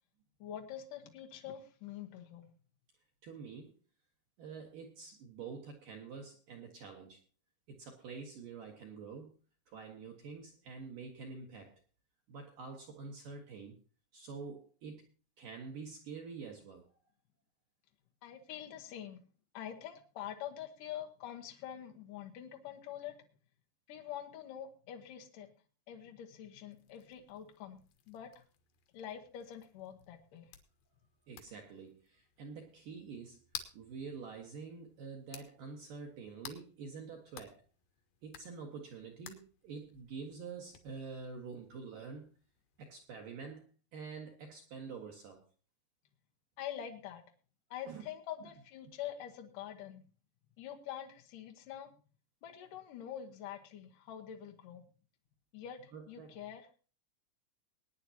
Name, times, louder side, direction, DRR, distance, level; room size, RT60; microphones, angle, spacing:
voice 1, 0.4-2.5 18.2-19.2 19.5-23.1 23.9-25.5 25.9-28.4 28.9-30.5 46.6-47.2 47.7-50.0 50.6-51.9 52.4-54.8 55.5-56.7, left 10 dB, 85° left, 2 dB, 1.9 m, -45 dB
voice 2, 3.2-3.7 4.4-7.2 7.7-9.3 9.7-11.8 12.3-13.7 14.1-15.0 15.4-16.8 31.3-33.4 33.7-37.6 38.2-42.3 42.8-43.6 43.9-45.4 47.9-48.1 55.9-56.3, right 5 dB, 60° right, 2 dB, 2.4 m, -47 dB
sound 1, 26.7-43.1, left 9 dB, 65° left, 2.5 m, -55 dB
22.5 x 9.8 x 2.9 m, 0.36 s
omnidirectional pair, 5.9 m